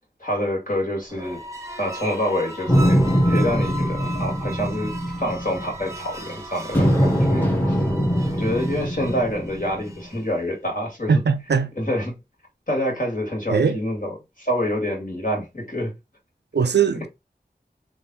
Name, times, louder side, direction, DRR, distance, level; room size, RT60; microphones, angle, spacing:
voice 1, 0.2-1.4 1.8-7.8 8.3-11.2 11.7-12.2 12.7-15.9, equal, 55° left, 2.0 m, -27 dB
sound 1, 1.0-10.4, equal, 15° right, 0.8 m, -37 dB
sound 2, 2.7-6.3 6.7-10.1, equal, 10° left, 1.1 m, -22 dB
voice 2, 11.1-11.7 13.5-13.8 16.5-17.1, right 6 dB, 85° right, 0.5 m, -20 dB
3.6 x 2.6 x 4.1 m
wide cardioid pair, 45°, 17 cm